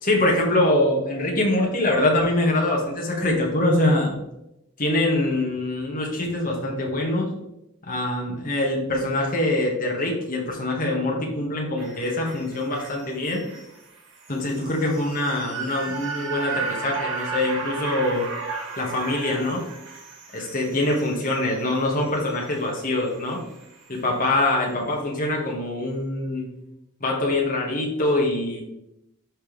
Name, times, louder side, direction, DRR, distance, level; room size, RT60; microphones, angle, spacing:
voice 1, 0.0-4.1 4.8-7.3 7.9-13.4 14.3-18.2 18.8-19.6 20.3-23.4 23.9-26.5 27.0-28.6, left 1 dB, 40° left, -1 dB, 2.0 m, -24 dB
sound 1, 11.8-24.1 24.5-24.6, right 4 dB, 55° right, 2.1 m, -35 dB
12.0 x 4.7 x 3.6 m, 0.85 s
head